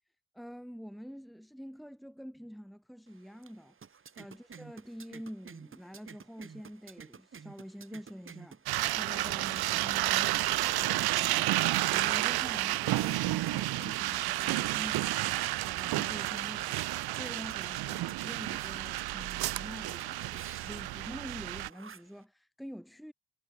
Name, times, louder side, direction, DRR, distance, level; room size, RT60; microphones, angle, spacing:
voice 1, 0.3-23.1, equal, ahead, 2.9 m, -46 dB
sound 1, 3.1-22.2, right 6 dB, 35° right, 1.6 m, -52 dB
sound 2, 8.7-21.7, right 17 dB, 90° right, 0.7 m, -31 dB
cardioid pair, 100°, 36 cm